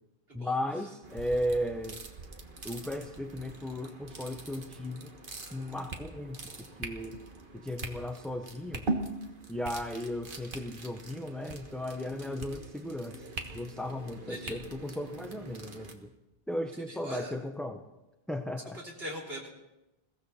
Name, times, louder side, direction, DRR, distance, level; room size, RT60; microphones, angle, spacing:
voice 1, 0.3-2.0 2.6-5.1 5.5-6.4 6.8-7.1 7.5-8.8 9.5-13.2 13.5-16.1 16.5-17.8 18.3-18.8, left 1 dB, ahead, 4 dB, 0.7 m, -35 dB
sound 1, 1.0-15.9, right 2 dB, 55° right, 1.7 m, -42 dB
voice 2, 16.9-17.3 18.7-19.5, equal, 70° right, -3 dB, 3.6 m, -41 dB
21.5 x 16.0 x 4.2 m, 0.97 s
omnidirectional pair, 1.1 m